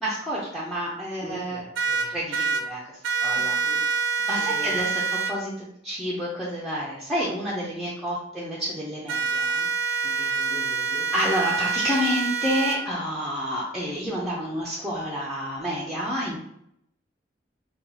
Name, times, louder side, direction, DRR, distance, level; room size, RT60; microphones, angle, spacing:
voice 1, 0.0-1.6 2.0-3.6 4.3-10.3 11.1-16.4, equal, ahead, -6 dB, 0.5 m, -29 dB
voice 2, 1.2-2.1 3.6-3.8 4.4-4.8 7.5-7.6 10.0-11.1, equal, 70° left, -1 dB, 0.9 m, -41 dB
sound 1, 1.7-2.6 3.0-5.3 9.1-12.8, right 5 dB, 85° right, 0.5 m, -26 dB
2.9 x 2.3 x 3.9 m, 0.75 s
head